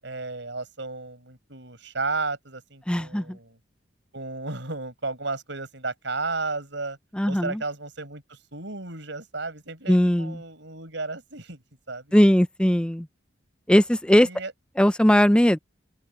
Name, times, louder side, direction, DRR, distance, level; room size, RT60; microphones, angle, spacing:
voice 1, 0.0-3.6 4.1-7.0 7.3-11.6 11.9-12.2 14.2-14.5, right 3 dB, 70° right, 7.1 m, -33 dB
voice 2, 2.9-3.4 7.1-7.6 9.9-10.4 12.1-13.1 13.7-14.3 14.8-15.6, equal, 5° left, 0.5 m, -19 dB
open air
head